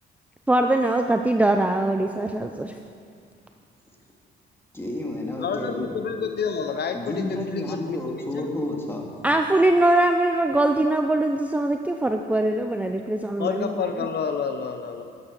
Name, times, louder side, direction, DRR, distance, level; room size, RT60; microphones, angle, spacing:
voice 1, 0.5-2.7 9.2-13.8, right 1 dB, 5° right, 5 dB, 0.5 m, -22 dB
voice 2, 4.7-5.9 6.9-9.1, left 1 dB, 10° left, 0 dB, 2.3 m, -31 dB
voice 3, 5.4-8.5 13.4-15.0, left 6 dB, 55° left, 6 dB, 0.8 m, -29 dB
11.5 x 8.3 x 6.7 m, 2.4 s
cardioid pair, 90°, 20 cm